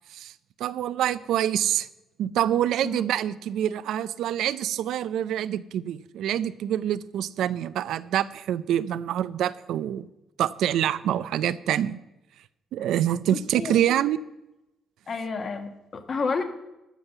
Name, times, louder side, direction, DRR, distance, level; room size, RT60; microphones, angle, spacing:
voice 1, 0.6-1.9 2.2-10.1 10.4-12.0 12.7-14.2, right 11 dB, 80° right, 16 dB, 0.4 m, -26 dB
voice 2, 13.2-13.7 15.1-16.4, left 4 dB, 45° left, 7 dB, 1.6 m, -31 dB
13.0 x 5.6 x 7.9 m, 0.93 s
cardioid pair, 90°, 0 cm